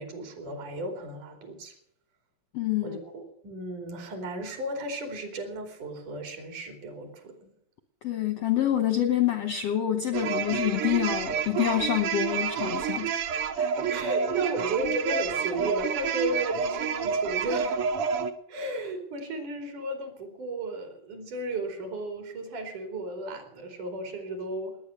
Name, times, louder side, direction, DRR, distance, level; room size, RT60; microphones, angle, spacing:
voice 1, 0.0-1.7 2.8-7.5 13.8-17.8 18.5-24.8, right 1 dB, 60° right, 5 dB, 4.1 m, -34 dB
voice 2, 2.5-3.0 8.0-13.3 13.6-13.7, left 11 dB, 70° left, 7 dB, 1.6 m, -27 dB
sound 1, 10.1-18.3, right 7 dB, 90° right, 1.2 m, -29 dB
19.5 x 9.8 x 6.6 m, 0.67 s
omnidirectional pair, 4.2 m